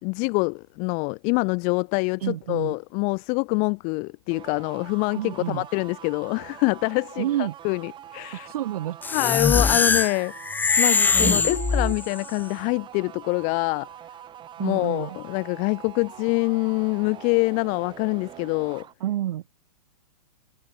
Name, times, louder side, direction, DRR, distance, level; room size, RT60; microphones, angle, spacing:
voice 1, 0.0-8.5 9.1-10.3 10.8-13.9 14.6-18.9, left 33 dB, 35° left, 3.4 m, -25 dB
voice 2, 2.2-2.7 5.2-5.7 7.2-7.5 8.5-9.0 11.2-11.9 14.6-15.2 19.0-19.5, right 12 dB, 60° right, 2.0 m, -29 dB
sound 1, 4.3-18.9, right 11 dB, 20° right, 6.7 m, -44 dB
sound 2, 9.0-12.3, left 4 dB, 10° left, 1.5 m, -22 dB
hypercardioid pair, 130°, 21 cm